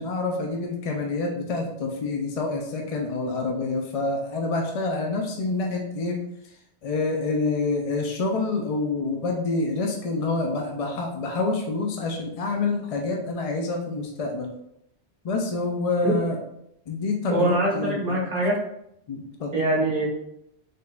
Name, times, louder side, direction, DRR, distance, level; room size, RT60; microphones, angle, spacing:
voice 1, 0.0-6.2 6.8-14.5 15.2-16.4 16.9-18.2 19.1-19.5, left 3 dB, 55° left, 1 dB, 0.4 m, -27 dB
voice 2, 17.3-18.6 19.5-20.1, right 1 dB, 40° right, -3 dB, 0.9 m, -23 dB
4.0 x 3.5 x 2.2 m, 0.78 s
omnidirectional pair, 1.2 m